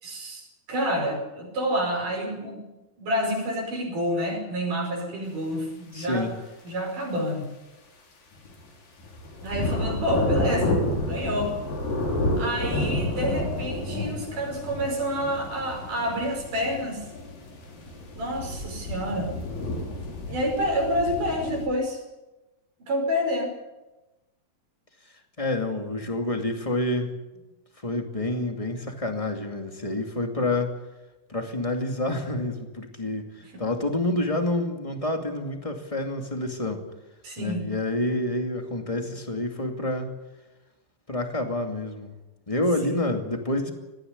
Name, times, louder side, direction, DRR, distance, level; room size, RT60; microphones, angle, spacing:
voice 1, 0.0-2.6 3.0-6.3 6.6-7.5 9.4-11.5 12.4-17.0 18.1-19.3 20.3-22.0 22.8-23.5 33.5-33.6 37.2-37.7 42.8-42.9, equal, 70° right, 2 dB, 6.8 m, -28 dB
voice 2, 5.9-6.3 25.4-27.1 27.8-30.7 31.3-36.8 37.4-40.1 41.1-42.1 42.5-43.7, left 1 dB, 10° left, 3 dB, 1.9 m, -28 dB
sound 1, 8.4-8.6 9.0-21.7, left 1 dB, 90° left, 5.4 m, -30 dB
20.0 x 15.0 x 9.7 m, 1.1 s
omnidirectional pair, 3.8 m